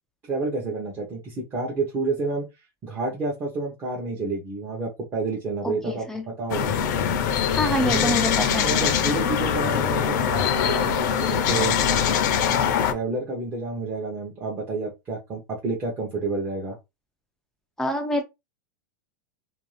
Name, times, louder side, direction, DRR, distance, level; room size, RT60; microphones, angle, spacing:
voice 1, 0.3-2.4 2.8-6.1 6.4-6.7 7.8-11.8 12.4-16.8, right 3 dB, 20° right, 0.7 m, -29 dB
voice 2, 5.6-6.2 7.5-8.7 17.8-18.2, left 1 dB, 5° left, 0.4 m, -26 dB
sound 1, 6.5-12.9, left 8 dB, 55° left, 0.5 m, -23 dB
2.6 x 2.2 x 3.2 m
supercardioid pair, 165°, 12 cm